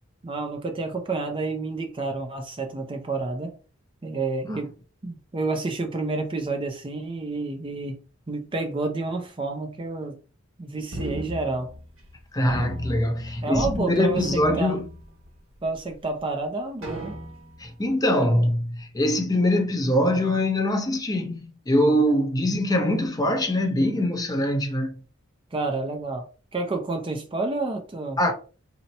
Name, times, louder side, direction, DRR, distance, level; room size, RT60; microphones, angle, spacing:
voice 1, 0.2-3.6 4.0-4.7 5.0-8.0 8.3-10.2 10.6-11.7 13.4-14.8 15.6-17.1 25.5-26.3 26.5-28.2, right 3 dB, 25° right, 0.5 m, -29 dB
sound 1, 10.9-12.2 12.5-13.8 14.0-15.4 15.9-16.0 16.8-17.7, equal, 80° right, 1.2 m, -35 dB
voice 2, 12.3-14.8 17.6-24.9 28.2-28.3, left 1 dB, 20° left, 0.6 m, -23 dB
2.8 x 2.1 x 3.9 m
head